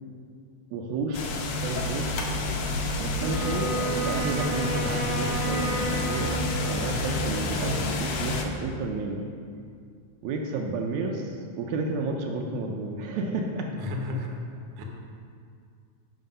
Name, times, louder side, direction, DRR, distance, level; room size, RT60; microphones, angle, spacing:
voice 1, 0.7-2.2 3.0-6.4 6.7-9.3 10.2-13.7, right 3 dB, 80° right, 2 dB, 2.0 m, -31 dB
sound 1, 1.1-8.5, left 2 dB, 90° left, 1.2 m, -29 dB
Wind instrument woodwind instrument, 3.2-7.3, right 2 dB, 40° right, 1.0 m, -32 dB
voice 2, 13.8-14.3 14.8-14.9, left 2 dB, 65° right, 1 dB, 1.8 m, -33 dB
10.5 x 3.8 x 5.4 m, 2.3 s
omnidirectional pair, 3.3 m